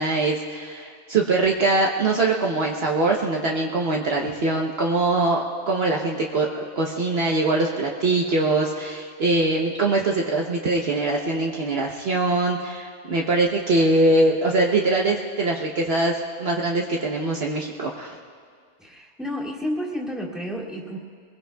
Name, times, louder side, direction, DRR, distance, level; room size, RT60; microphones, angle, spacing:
voice 1, 0.0-6.5 6.8-18.2, right 2 dB, 60° right, -1 dB, 1.2 m, -22 dB
voice 2, 18.8-21.0, equal, ahead, -5 dB, 2.4 m, -31 dB
23.0 x 21.5 x 2.3 m, 2.1 s
omnidirectional pair, 1.2 m